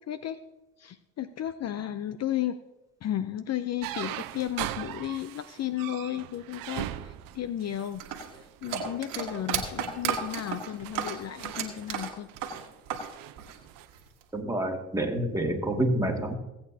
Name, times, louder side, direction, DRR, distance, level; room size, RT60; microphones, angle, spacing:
voice 1, 0.1-0.4 0.8-2.6 3.0-8.1 8.3-12.3, left 11 dB, 45° left, 12 dB, 0.6 m, -34 dB
sound 1, 3.8-8.5 9.1-9.4 9.9-13.9, right 14 dB, 65° right, 0.7 m, -40 dB
sound 2, 8.0-13.1 13.4-14.2, right 8 dB, 85° right, 1.6 m, -33 dB
voice 2, 14.3-16.3, right 1 dB, 10° right, 1 dB, 2.2 m, -28 dB
17.0 x 8.6 x 2.8 m, 0.98 s
supercardioid pair, 65°, 36 cm